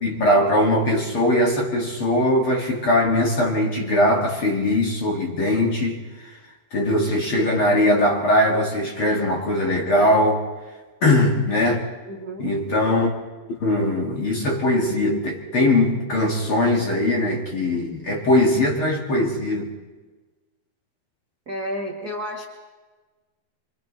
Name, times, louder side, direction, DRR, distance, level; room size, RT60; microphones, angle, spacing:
voice 1, 0.0-6.3 6.7-10.4 11.0-11.9 12.4-13.1 13.6-19.7, left 1 dB, 40° left, 0 dB, 2.4 m, -20 dB
voice 2, 12.1-12.5 21.5-22.5, equal, 40° right, 0 dB, 1.3 m, -31 dB
25.5 x 25.0 x 4.2 m, 1.3 s
omnidirectional pair, 4.5 m